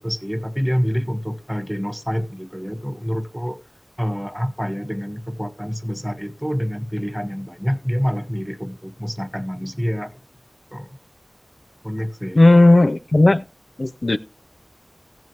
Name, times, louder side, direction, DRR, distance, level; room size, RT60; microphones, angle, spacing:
voice 1, 0.0-3.6 4.0-10.1 10.7-10.9 11.8-12.4, equal, 5° right, 1.2 m, -27 dB
voice 2, 12.4-13.4 13.8-14.2, left 2 dB, 55° left, 0.4 m, -14 dB
14.5 x 7.8 x 3.2 m
wide cardioid pair, 50°, 0 cm